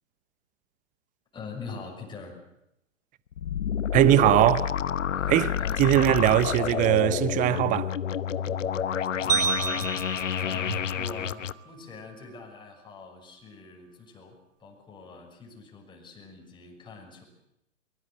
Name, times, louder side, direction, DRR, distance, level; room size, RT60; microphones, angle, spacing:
voice 1, 1.3-2.4 5.1-5.8 8.4-8.5 8.8-10.1 10.4-17.2, left 4 dB, 10° left, 6.1 m, -43 dB
sound 1, 3.3-11.5, left 8 dB, 75° left, 1.0 m, -29 dB
voice 2, 3.9-4.8 5.3-5.5 5.8-7.9, right 14 dB, 20° right, 0.9 m, -21 dB
sound 2, 9.3-11.7, right 6 dB, 85° right, 2.1 m, -31 dB
23.5 x 21.5 x 7.9 m
hypercardioid pair, 120°, 37 cm